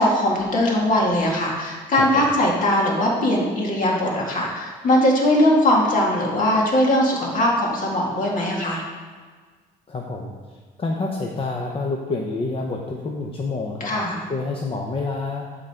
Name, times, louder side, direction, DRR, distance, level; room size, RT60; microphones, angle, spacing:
voice 1, 0.0-8.8 13.8-14.2, left 1 dB, 50° left, -2 dB, 2.1 m, -20 dB
voice 2, 9.9-13.9 14.3-15.5, left 3 dB, 35° left, 0 dB, 0.8 m, -28 dB
11.5 x 3.9 x 4.4 m, 1.5 s
cardioid pair, 110°, 17 cm